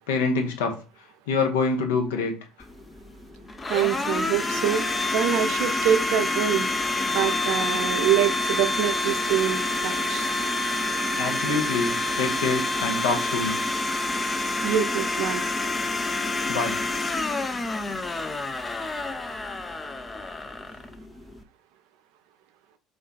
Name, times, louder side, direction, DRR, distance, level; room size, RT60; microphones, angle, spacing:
voice 1, 0.1-0.8 1.3-2.3 11.2-13.5 16.5-16.7, left 4 dB, 80° left, 3 dB, 0.6 m, -25 dB
Domestic sounds home sounds, 2.6-21.4, left 2 dB, 25° left, 0.4 m, -28 dB
voice 2, 3.7-4.9 5.1-6.7 7.0-10.3 14.6-15.4, right 10 dB, 70° right, 10 dB, 0.4 m, -25 dB
2.4 x 2.2 x 3.7 m, 0.34 s
hypercardioid pair, 65°, 0 cm